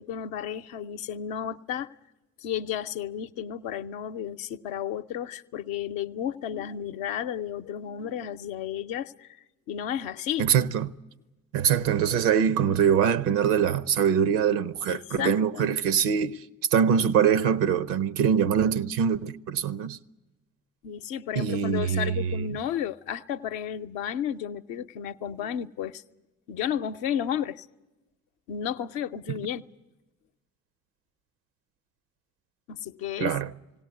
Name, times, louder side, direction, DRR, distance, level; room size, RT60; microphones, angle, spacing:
voice 1, 0.0-1.9 2.4-9.3 9.7-10.5 14.9-15.7 20.8-26.0 26.5-27.7 28.5-29.7 32.7-33.3, left 9 dB, 75° left, 0.7 m, -32 dB
voice 2, 10.4-10.9 11.5-16.4 16.7-20.0 21.4-22.5 33.2-33.5, right 8 dB, 75° right, 0.8 m, -23 dB
19.5 x 17.5 x 9.5 m
hypercardioid pair, 45°, 36 cm